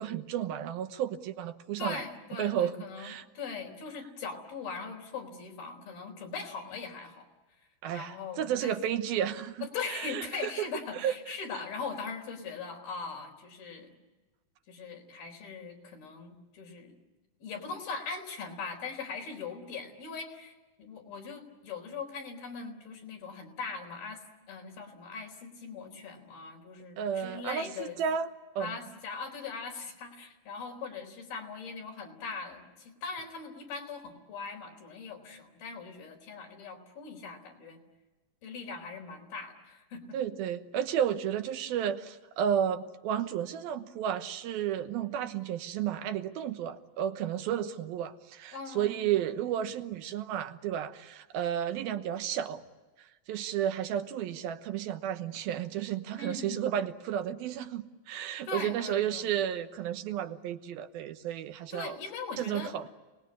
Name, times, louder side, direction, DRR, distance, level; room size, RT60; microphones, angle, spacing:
voice 1, 0.0-2.0 2.4-2.7 3.0-3.2 7.8-10.5 11.0-11.1 27.0-28.3 28.6-28.7 40.1-52.6 53.0-62.0 62.4-62.9, right 9 dB, 90° right, 8 dB, 3.0 m, -32 dB
voice 2, 1.8-7.3 7.6-8.8 9.6-13.9 14.7-16.9 17.4-24.2 24.5-28.0 28.6-37.8 38.4-40.2 48.5-49.1 56.1-56.7 58.5-59.3 61.7-62.7, left 5 dB, 80° left, 2 dB, 5.9 m, -40 dB
28.5 x 20.0 x 9.8 m, 1.2 s
omnidirectional pair, 4.2 m